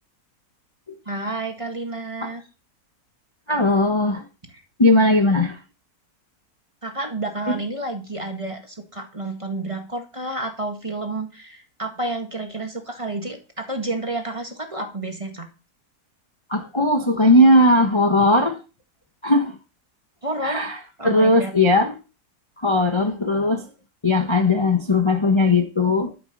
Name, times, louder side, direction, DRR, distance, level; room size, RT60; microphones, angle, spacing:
voice 1, 1.1-2.4 6.8-15.5 20.2-20.7 21.0-21.6, right 2 dB, 20° right, 1.8 m, -30 dB
voice 2, 3.5-4.2 4.8-5.5 7.5-7.6 16.5-18.6 19.2-19.5 20.4-20.8 21.0-21.9 22.6-23.7 24.0-26.1, left 1 dB, 20° left, 1.1 m, -18 dB
12.5 x 6.8 x 5.4 m
omnidirectional pair, 1.7 m